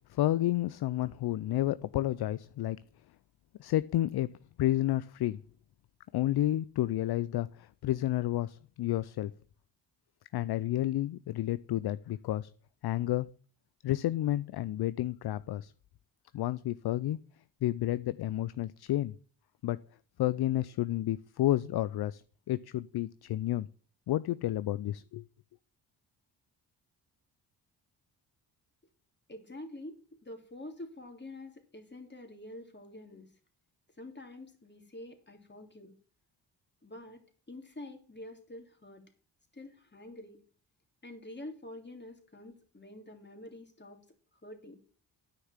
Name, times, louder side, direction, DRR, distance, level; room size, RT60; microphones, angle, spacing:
voice 1, 0.0-2.8 3.6-4.3 4.6-5.4 6.1-9.3 10.3-12.5 12.8-13.3 13.8-15.7 16.3-17.2 17.6-19.1 19.6-19.8 20.2-22.2 22.5-23.7 24.1-25.2, left 14 dB, 55° left, 0.6 m, -30 dB
voice 2, 29.3-33.3 34.0-35.9 36.8-37.2 37.5-39.0 39.5-40.4 41.0-44.0 44.4-44.8, left 1 dB, 25° left, 3.2 m, -47 dB
10.0 x 5.9 x 7.4 m
supercardioid pair, 45°, 45 cm